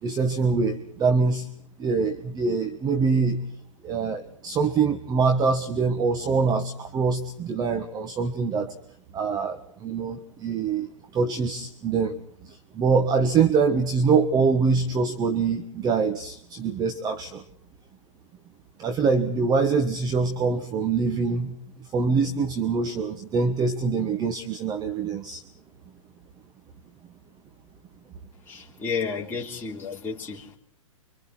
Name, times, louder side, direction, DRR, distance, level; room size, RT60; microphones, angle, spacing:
voice 1, 0.0-1.5 1.8-3.4 3.8-8.7 9.1-10.9 11.1-17.4 18.8-21.5 21.8-25.4, right 5 dB, 25° right, 1.6 m, -24 dB
voice 2, 28.5-30.6, left 5 dB, 10° left, 3.3 m, -32 dB
30.0 x 25.5 x 4.5 m
hypercardioid pair, 115°, 17 cm